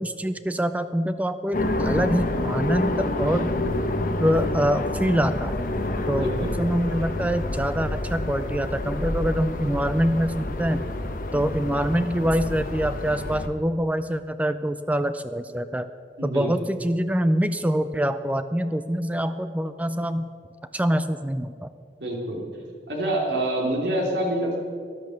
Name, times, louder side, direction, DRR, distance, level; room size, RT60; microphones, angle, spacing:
voice 1, 0.0-3.5 4.2-5.6 6.1-10.8 11.3-15.9 16.2-20.3 20.7-21.7, equal, 10° right, 11 dB, 0.4 m, -25 dB
sound 1, 1.5-13.5, left 1 dB, 50° left, 1.1 m, -28 dB
voice 2, 6.1-6.6 16.2-16.7 22.0-22.5 22.9-24.6, right 1 dB, 80° right, 0 dB, 3.1 m, -26 dB
14.0 x 11.0 x 6.4 m, 2.2 s
head